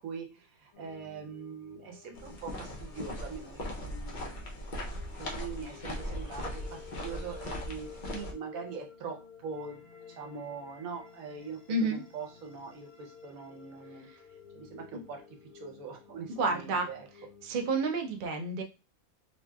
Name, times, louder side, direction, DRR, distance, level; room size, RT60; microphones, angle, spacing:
voice 1, 0.0-4.6 5.2-9.2 9.4-9.8 10.2-14.1 14.5-15.2 15.6-17.1, right 5 dB, 80° right, 3 dB, 1.2 m, -42 dB
sound 1, 0.7-17.7, left 6 dB, 70° left, 1.1 m, -53 dB
sound 2, 2.1-8.3, equal, 50° left, 0.6 m, -39 dB
voice 2, 11.7-12.0 14.1-14.2 16.4-16.9 17.4-18.6, right 3 dB, 60° right, 3 dB, 0.5 m, -30 dB
2.9 x 2.7 x 2.2 m, 0.29 s
omnidirectional pair, 1.4 m